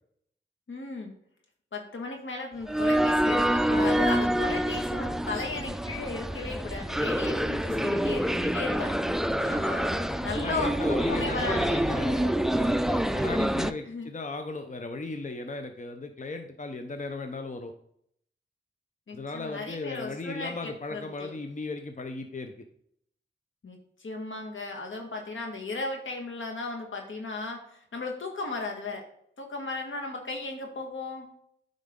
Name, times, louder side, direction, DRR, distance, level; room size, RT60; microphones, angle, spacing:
voice 1, 0.7-1.1 1.7-9.0 9.5-11.9 13.9-14.1 19.1-21.4 23.6-29.1 29.4-31.3, left 3 dB, 75° left, 2 dB, 1.7 m, -35 dB
sound 1, 2.7-13.7, right 1 dB, ahead, 0.4 m, -27 dB
voice 2, 9.2-9.6 10.4-17.7 19.1-22.5, left 3 dB, 40° left, 6 dB, 0.8 m, -36 dB
8.8 x 5.3 x 3.7 m, 0.69 s
cardioid pair, 50°, 20 cm